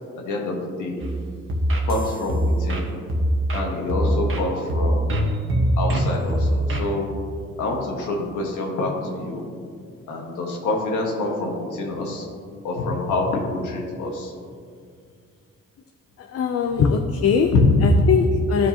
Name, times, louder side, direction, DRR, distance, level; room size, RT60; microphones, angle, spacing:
voice 1, 0.1-1.0 1.9-2.9 3.5-5.2 5.8-7.1 7.6-9.4 10.1-12.3 12.6-14.3 17.5-17.8, left 2 dB, 80° left, 0 dB, 1.6 m, -26 dB
sound 1, 1.0-7.0, right 1 dB, 45° right, 1.3 m, -23 dB
voice 2, 16.2-17.5 17.8-18.7, left 6 dB, 50° left, 4 dB, 0.6 m, -21 dB
12.5 x 5.2 x 2.9 m, 2.2 s
cardioid pair, 90°, 30 cm